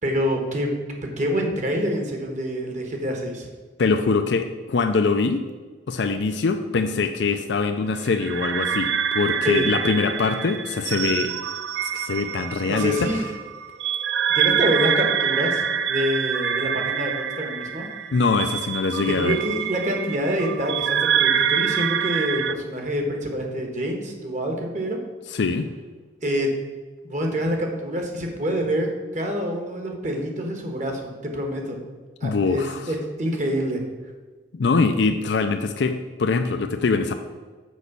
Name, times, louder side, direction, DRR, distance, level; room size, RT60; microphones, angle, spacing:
voice 1, 0.0-0.7 1.2-3.5 9.4-9.7 12.7-13.3 14.3-17.9 19.1-25.0 26.2-26.5 27.0-31.8 32.2-33.8, equal, 40° right, 2 dB, 1.3 m, -26 dB
voice 2, 3.8-5.4 5.9-11.3 11.9-13.2 18.1-19.4 25.3-25.7 32.2-32.9 34.5-37.1, left 4 dB, 75° left, 7 dB, 0.5 m, -23 dB
sound 1, 8.1-22.5, right 8 dB, 80° right, 0.4 m, -26 dB
6.3 x 5.0 x 6.8 m, 1.4 s
head